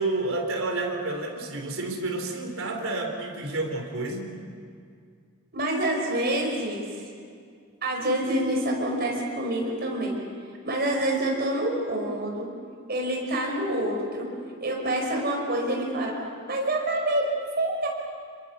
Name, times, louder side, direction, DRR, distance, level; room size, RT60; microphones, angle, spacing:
voice 1, 0.0-4.3, right 2 dB, 70° right, 2 dB, 3.9 m, -30 dB
voice 2, 5.5-7.0 7.8-10.2 10.6-12.5 12.9-14.3 14.6-16.2 16.5-17.9, right 1 dB, 45° right, 0 dB, 5.3 m, -27 dB
27.5 x 22.5 x 6.9 m, 2.2 s
head